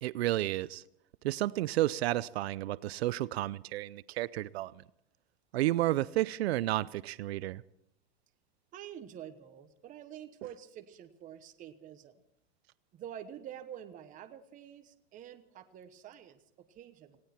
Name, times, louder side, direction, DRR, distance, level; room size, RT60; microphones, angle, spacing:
voice 1, 0.0-0.8 1.2-4.7 5.5-7.6, right 15 dB, 85° right, 0.6 m, -31 dB
voice 2, 8.7-12.2 12.9-17.2, right 10 dB, 25° right, 1.1 m, -48 dB
19.0 x 16.5 x 4.4 m
supercardioid pair, 150°, 31 cm